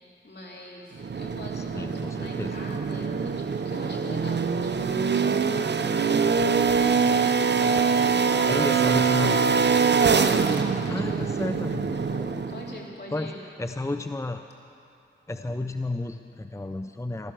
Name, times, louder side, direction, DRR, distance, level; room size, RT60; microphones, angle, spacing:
voice 1, 0.0-6.0 6.7-9.3 10.1-13.4, left 1 dB, 60° left, -3 dB, 3.0 m, -44 dB
sound 1, 1.0-12.8, right 5 dB, 65° right, 0.6 m, -24 dB
voice 2, 1.6-2.5 8.5-9.4 10.9-11.9 13.1-13.3 13.6-14.4 15.3-17.3, left 2 dB, 15° left, 7 dB, 0.6 m, -31 dB
15.5 x 13.5 x 6.2 m, 2.6 s
cardioid pair, 45°, 19 cm